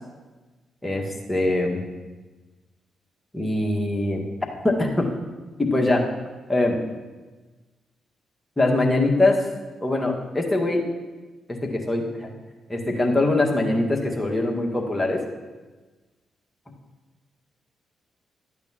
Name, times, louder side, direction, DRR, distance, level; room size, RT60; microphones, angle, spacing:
voice 1, 0.8-1.8 3.3-4.2 4.6-5.1 5.6-6.0 6.5-6.8 8.6-9.4 9.8-10.9 11.6-12.3 12.7-15.2, left 2 dB, 15° left, 0 dB, 1.7 m, -22 dB
12.0 x 8.8 x 3.0 m, 1.3 s
hypercardioid pair, 45°, 0 cm